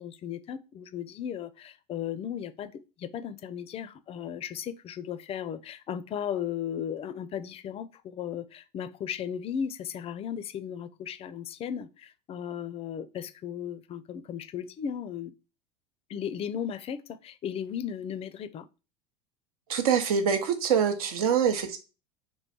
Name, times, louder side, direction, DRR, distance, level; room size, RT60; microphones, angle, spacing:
voice 1, 0.0-15.3 16.1-18.7, left 8 dB, 30° left, 0.4 m, -36 dB
voice 2, 19.7-21.8, right 7 dB, 70° right, 0.8 m, -25 dB
3.2 x 3.1 x 4.1 m
figure-of-eight pair, 75°, 20 cm